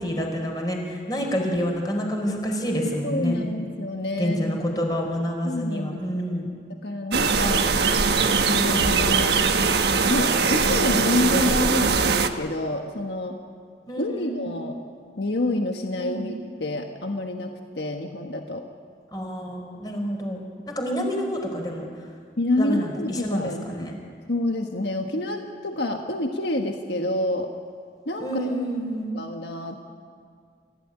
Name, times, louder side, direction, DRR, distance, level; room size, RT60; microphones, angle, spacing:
voice 1, 0.0-3.5 4.2-6.5 13.9-14.6 15.9-16.3 19.1-20.4 20.7-21.8 22.6-23.9 28.2-29.1, equal, 20° left, 1 dB, 4.6 m, -28 dB
voice 2, 3.0-4.9 5.4-6.2 6.8-7.7 8.4-9.5 10.1-13.4 14.0-14.7 15.2-16.3 16.6-18.6 22.4-23.9 24.3-27.5 28.0-28.5 29.1-29.8, left 1 dB, 80° left, 3 dB, 1.5 m, -28 dB
sound 1, 7.1-12.3, right 5 dB, 70° right, 1.2 m, -21 dB
28.5 x 16.0 x 10.0 m, 2.1 s
head